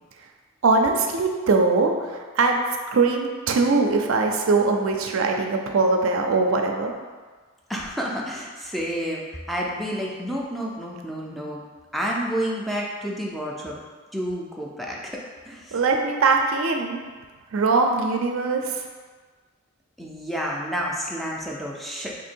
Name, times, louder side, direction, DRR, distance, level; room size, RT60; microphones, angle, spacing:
voice 1, 0.6-2.6 2.9-6.9 15.7-17.0 17.5-18.8, right 3 dB, 70° right, 3 dB, 0.4 m, -21 dB
voice 2, 7.7-11.6 11.9-13.8 14.1-15.8 20.0-22.2, equal, ahead, -3 dB, 0.3 m, -30 dB
2.8 x 2.6 x 4.3 m, 1.5 s
head